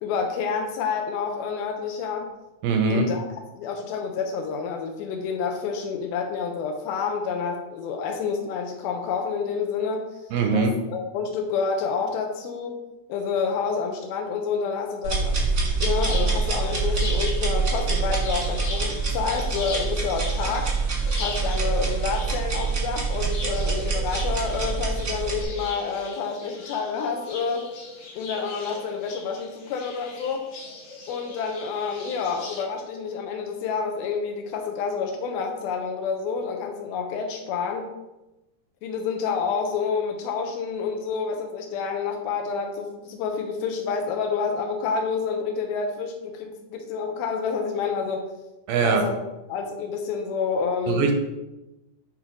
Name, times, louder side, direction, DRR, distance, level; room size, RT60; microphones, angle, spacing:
voice 1, 0.0-2.3 2.9-3.3 3.5-10.1 10.5-12.8 13.1-15.4 15.8-20.7 21.2-27.7 28.1-30.5 31.1-37.9 38.8-48.2 48.8-49.2 49.5-51.1, left 5 dB, 85° left, 3 dB, 2.6 m, -28 dB
voice 2, 2.6-3.1 10.3-10.7 48.7-49.0 50.9-51.1, right 4 dB, 80° right, 4 dB, 2.3 m, -21 dB
sound 1, 15.0-25.4, right 4 dB, 50° right, 1.1 m, -25 dB
sound 2, 16.0-32.6, left 3 dB, 70° left, 1.4 m, -39 dB
8.8 x 3.2 x 4.9 m, 0.98 s
omnidirectional pair, 4.3 m